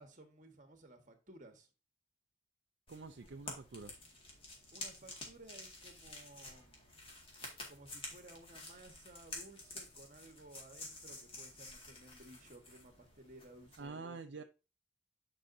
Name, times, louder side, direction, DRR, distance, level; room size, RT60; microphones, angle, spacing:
voice 1, 0.0-1.7 4.7-6.9 7.7-14.4, right 1 dB, 40° right, 1.4 m, -57 dB
sound 1, 2.9-13.9, left 2 dB, 30° left, 2.1 m, -50 dB
voice 2, 2.9-3.9 13.8-14.4, right 4 dB, 60° right, 0.5 m, -47 dB
10.0 x 5.0 x 2.7 m
head